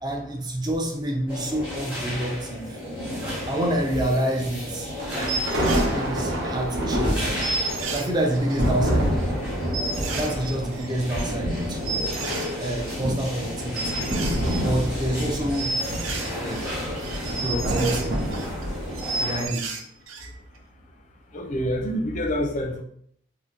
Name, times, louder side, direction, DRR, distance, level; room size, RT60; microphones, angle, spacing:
voice 1, 0.0-2.8 3.5-5.3 5.9-7.4 7.9-9.2 10.2-12.1 12.6-14.0 14.6-15.8 16.3-16.7 17.4-18.2 18.7-19.7, right 1 dB, 20° right, 2 dB, 0.4 m, -28 dB
sound 1, 1.3-19.5, equal, 5° right, 1.0 m, -33 dB
sound 2, 4.7-4.8 5.1-5.9 6.5-6.6 6.8-6.9 7.1-7.2 7.4-8.8 9.3-9.4 9.7-12.9 13.2-13.4 13.8-15.1 15.4-18.6 18.9-20.3 20.6-20.7, right 3 dB, 80° right, 0.5 m, -32 dB
sound 3, 5.0-19.3, equal, 55° right, 0.9 m, -28 dB
voice 2, 21.3-22.8, equal, 40° left, 2 dB, 0.5 m, -27 dB
2.8 x 2.1 x 3.6 m, 0.66 s
head